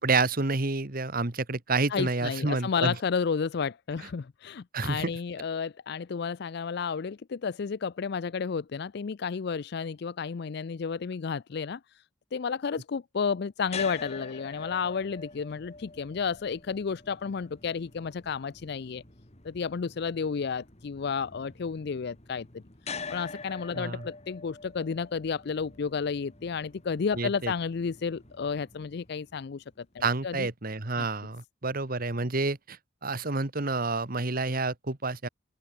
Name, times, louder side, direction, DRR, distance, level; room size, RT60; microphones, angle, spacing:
voice 1, 0.0-2.9 4.7-5.1 23.7-24.0 27.2-27.5 30.0-32.8 33.0-35.3, right 3 dB, 50° right, 1.7 m, -29 dB
voice 2, 1.9-12.0 12.3-19.0 19.4-22.6 23.1-30.5 31.0-31.1, left 5 dB, 60° left, 0.4 m, -32 dB
sound 1, 13.7-29.8, left 4 dB, 35° left, 3.5 m, -45 dB
open air
head